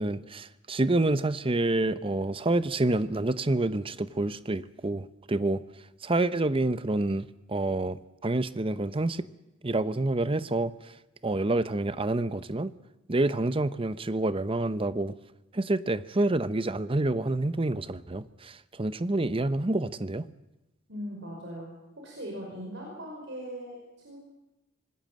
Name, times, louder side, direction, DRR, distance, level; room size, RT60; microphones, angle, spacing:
voice 1, 0.0-5.6 6.0-9.3 9.6-10.7 11.2-12.7 13.1-15.1 15.5-20.3, right 2 dB, 30° right, 14 dB, 0.8 m, -28 dB
voice 2, 20.9-21.7 22.0-23.8 24.0-24.2, equal, 65° right, -1 dB, 5.4 m, -39 dB
25.5 x 19.0 x 7.6 m, 1.0 s
head